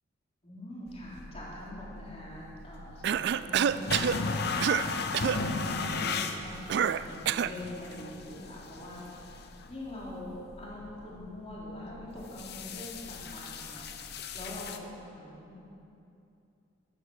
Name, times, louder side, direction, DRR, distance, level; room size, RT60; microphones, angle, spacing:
voice 1, 0.4-15.6, left 1 dB, 30° left, -6 dB, 3.4 m, -44 dB
sound 1, 0.9-14.8, left 4 dB, 55° left, 0.8 m, -37 dB
Cough, 3.0-4.2 4.6-4.9 5.1-5.4 6.7-7.6, right 8 dB, 55° right, 0.3 m, -27 dB
13.5 x 12.5 x 6.4 m, 2.7 s
head